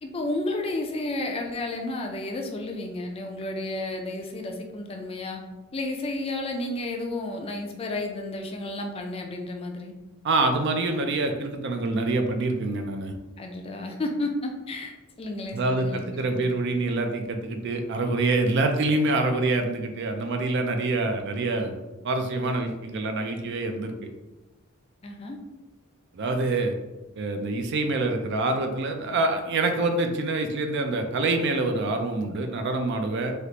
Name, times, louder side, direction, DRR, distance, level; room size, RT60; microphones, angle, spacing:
voice 1, 0.0-5.4 5.7-9.9 13.4-16.0 16.3-16.4 25.0-25.4, left 2 dB, 25° left, 2 dB, 0.4 m, -32 dB
voice 2, 10.2-13.1 15.5-21.8 22.0-23.9 26.1-26.7 27.2-33.3, right 2 dB, 55° right, 5 dB, 0.4 m, -26 dB
3.3 x 2.4 x 2.8 m, 1.1 s
head